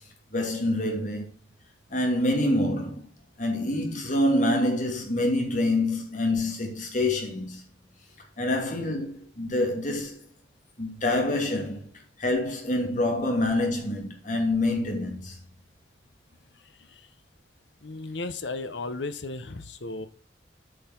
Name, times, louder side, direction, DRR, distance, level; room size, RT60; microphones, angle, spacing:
voice 1, 0.3-1.3 1.9-3.1 3.4-7.6 8.4-10.2 10.8-11.9 12.2-15.4, left 1 dB, 45° left, 2.8 m, -26 dB
voice 2, 16.5-17.1 17.8-20.1, left 3 dB, 80° left, 1.0 m, -35 dB
8.4 x 5.7 x 6.0 m
head